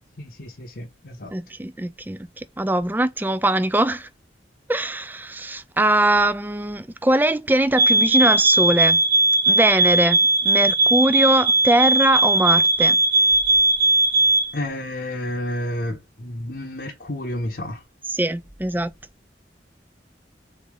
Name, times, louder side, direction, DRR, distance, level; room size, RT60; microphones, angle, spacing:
voice 1, 0.2-1.3 14.5-17.8, left 1 dB, 60° left, 0.9 m, -30 dB
voice 2, 1.3-4.1 4.7-9.0 9.5-13.0 18.1-18.9, right 1 dB, 10° right, 0.4 m, -21 dB
sound 1, 7.8-14.5, right 2 dB, 55° right, 1.0 m, -18 dB
3.8 x 3.2 x 3.6 m
head